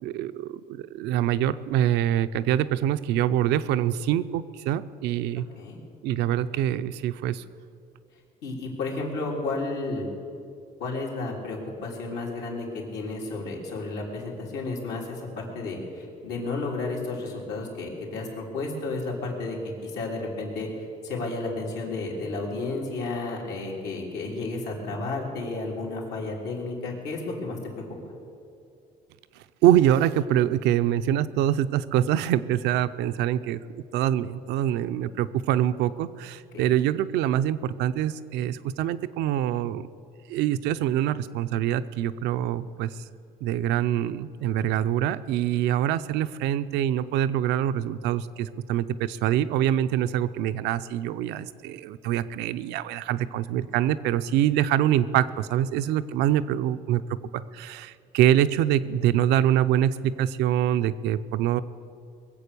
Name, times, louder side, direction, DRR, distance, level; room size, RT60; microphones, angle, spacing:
voice 1, 0.0-5.4 6.0-7.4 29.6-33.6 33.9-39.9 40.3-42.9 43.4-57.0 57.3-61.6, right 11 dB, 90° right, 13 dB, 0.6 m, -25 dB
voice 2, 5.4-5.8 8.4-10.1 10.8-28.0 36.5-36.7, left 3 dB, 80° left, -2 dB, 3.6 m, -32 dB
21.5 x 7.9 x 6.9 m, 2.5 s
cardioid pair, 110°, 17 cm